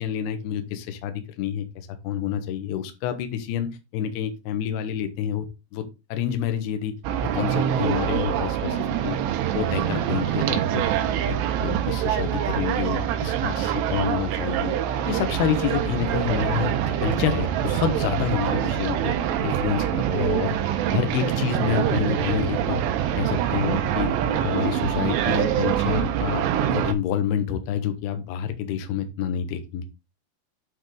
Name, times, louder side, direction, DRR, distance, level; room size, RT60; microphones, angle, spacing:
voice 1, 0.0-5.5 5.7-5.8 6.1-6.9 7.3-9.2 9.5-10.9 11.3-14.8 15.1-16.7 17.0-19.1 19.4-20.6 20.9-22.8 23.2-26.4 26.7-29.9, left 9 dB, 75° left, 8 dB, 2.8 m, -28 dB
sound 1, 7.0-26.9, right 10 dB, 85° right, 3.0 m, -25 dB
9.3 x 3.6 x 3.8 m, 0.26 s
omnidirectional pair, 4.8 m